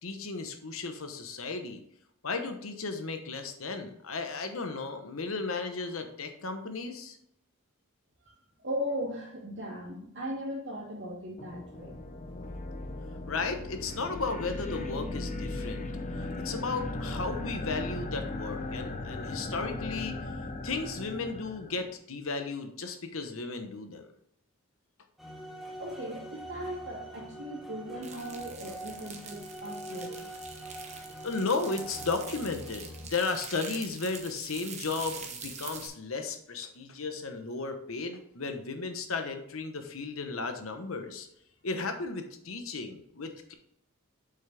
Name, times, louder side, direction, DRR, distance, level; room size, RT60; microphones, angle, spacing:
voice 1, 0.0-1.8 2.2-7.2 13.3-15.9 16.2-20.3 20.6-24.1 31.2-41.3 41.6-43.5, left 4 dB, 70° left, 7 dB, 1.0 m, -34 dB
voice 2, 8.6-12.0 25.8-30.3, equal, 60° right, -3 dB, 2.6 m, -38 dB
sound 1, 11.4-21.9, left 2 dB, 35° left, 0.7 m, -37 dB
sound 2, 25.2-33.1, right 1 dB, ahead, 1.3 m, -44 dB
sound 3, 28.0-35.9, right 5 dB, 35° right, 1.1 m, -44 dB
7.2 x 5.7 x 3.4 m, 0.74 s
head